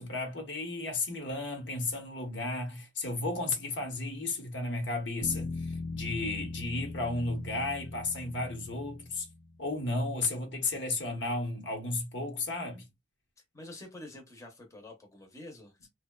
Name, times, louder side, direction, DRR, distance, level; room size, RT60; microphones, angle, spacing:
voice 1, 0.0-9.3 9.6-12.9, left 2 dB, 80° left, 0.9 m, -33 dB
Bass guitar, 5.2-9.6, left 3 dB, 65° left, 0.6 m, -40 dB
voice 2, 13.5-15.9, left 1 dB, 15° left, 0.6 m, -48 dB
2.6 x 2.1 x 2.2 m
head